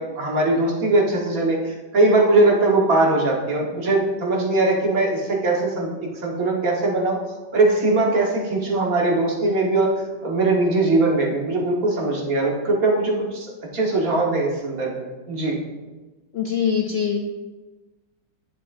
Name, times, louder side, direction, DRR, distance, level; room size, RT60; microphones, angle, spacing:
voice 1, 0.0-7.2 7.5-9.9 10.2-15.6, right 2 dB, 55° right, -2 dB, 2.0 m, -21 dB
voice 2, 16.3-17.2, left 7 dB, 70° left, 1 dB, 0.6 m, -22 dB
10.5 x 7.3 x 2.6 m, 1.2 s
omnidirectional pair, 1.9 m